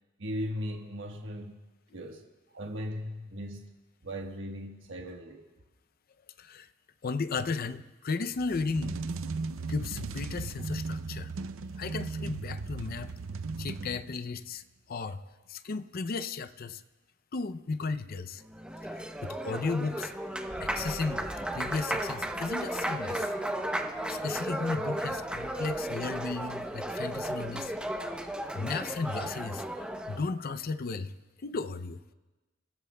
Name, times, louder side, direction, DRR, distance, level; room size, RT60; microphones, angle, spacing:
voice 1, 0.2-1.6 1.9-3.7 4.0-5.4 15.2-15.3, equal, 65° right, 2 dB, 1.3 m, -38 dB
voice 2, 7.0-9.0 9.7-11.3 11.8-13.1 13.6-14.6 14.9-15.2 15.5-16.8 17.3-18.4 18.8-20.1 20.6-21.2 21.5-23.3 24.1-27.7 28.5-31.1 31.4-32.1, left 4 dB, 50° left, 12 dB, 0.5 m, -35 dB
sound 1, 8.4-14.4, right 4 dB, 90° right, 0.5 m, -37 dB
Applause, 18.4-30.3, right 1 dB, 5° right, 0.7 m, -34 dB
sound 2, 20.5-28.3, equal, 35° right, 1.6 m, -51 dB
28.0 x 16.0 x 2.3 m, 1.2 s
head